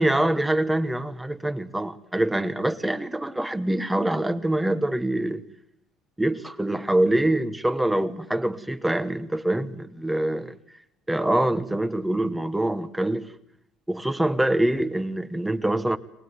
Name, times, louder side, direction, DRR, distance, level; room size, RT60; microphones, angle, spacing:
voice 1, 0.0-5.4 6.2-10.6 11.1-13.3 13.9-16.0, right 1 dB, 5° right, 1.2 m, -25 dB
24.0 x 19.0 x 9.6 m
cardioid pair, 110°, 0 cm